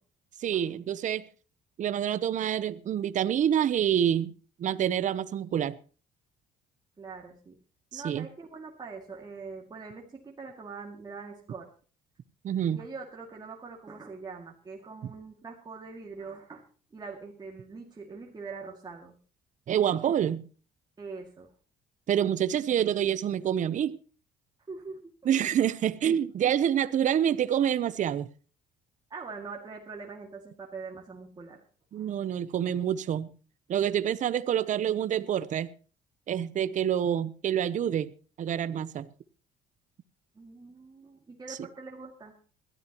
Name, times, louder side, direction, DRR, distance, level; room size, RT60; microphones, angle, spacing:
voice 1, 0.4-1.2 1.8-4.3 4.6-5.8 7.9-8.3 12.4-12.8 15.0-15.1 19.7-20.4 22.1-24.0 25.2-28.3 31.9-33.3 33.7-35.7 36.3-38.1 38.4-39.1 41.5-41.6, right 9 dB, 50° right, 0.8 m, -27 dB
voice 2, 7.0-7.6 7.9-11.7 12.7-16.6 16.9-19.1 21.0-21.5 24.7-25.3 29.1-31.6 31.9-32.1 38.5-38.6 40.3-42.3, right 4 dB, 25° right, 2.3 m, -43 dB
21.5 x 13.0 x 3.0 m
cardioid pair, 110°, 17 cm